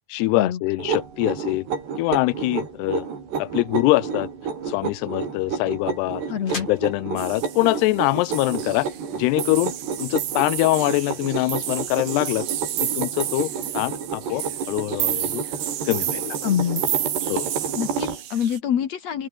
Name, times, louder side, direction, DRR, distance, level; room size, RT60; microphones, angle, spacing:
voice 1, 0.1-1.7 2.0-3.1 3.4-4.3 4.7-6.2 6.5-8.9 9.2-9.7 10.0-12.5 12.8-15.4 15.9-16.4 17.3-17.5, left 20 dB, 90° left, 2.7 m, -23 dB
sound 1, 0.8-18.2, right 6 dB, 80° right, 7.4 m, -31 dB
sound 2, 3.8-9.7, left 2 dB, 25° left, 8.2 m, -44 dB
voice 2, 6.3-6.7 16.4-16.8 17.8-19.3, left 9 dB, 55° left, 2.2 m, -25 dB
sound 3, 7.2-7.9 8.2-9.1 9.4-18.6, right 11 dB, 60° right, 2.9 m, -31 dB
open air
omnidirectional pair, 4.7 m